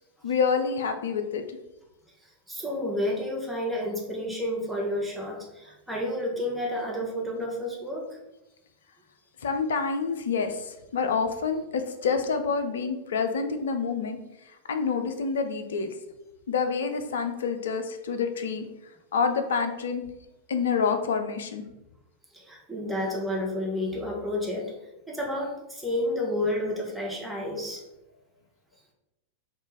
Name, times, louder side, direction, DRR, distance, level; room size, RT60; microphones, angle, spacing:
voice 1, 0.2-1.4 9.4-14.2 14.7-15.9 16.5-18.6 19.1-20.0 20.5-21.6, left 5 dB, 60° left, 7 dB, 0.4 m, -27 dB
voice 2, 2.2-8.2 22.3-24.7 25.1-27.8, left 1 dB, 5° right, -2 dB, 0.9 m, -30 dB
4.3 x 2.4 x 3.1 m, 0.96 s
figure-of-eight pair, 90°, 0 cm